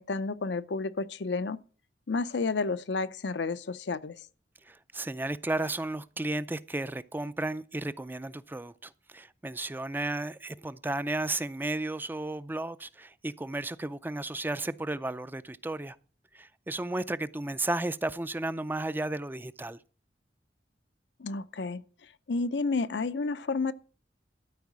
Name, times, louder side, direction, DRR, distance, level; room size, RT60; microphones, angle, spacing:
voice 1, 0.0-1.6 2.1-4.2 21.2-21.8 22.3-23.7, left 3 dB, 75° left, 0.6 m, -31 dB
voice 2, 4.7-16.0 16.3-19.8, right 2 dB, 10° right, 0.4 m, -33 dB
13.0 x 4.9 x 7.3 m
head